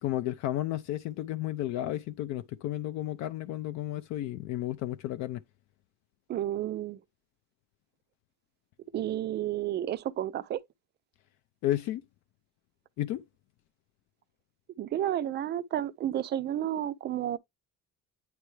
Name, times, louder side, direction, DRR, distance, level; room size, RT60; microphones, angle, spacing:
voice 1, 0.0-5.4 11.6-12.0 13.0-13.2, left 14 dB, 60° left, 0.5 m, -32 dB
voice 2, 6.3-7.0 8.9-10.6 14.8-17.4, right 11 dB, 35° right, 0.4 m, -31 dB
9.1 x 3.3 x 3.1 m
cardioid pair, 170°, 31 cm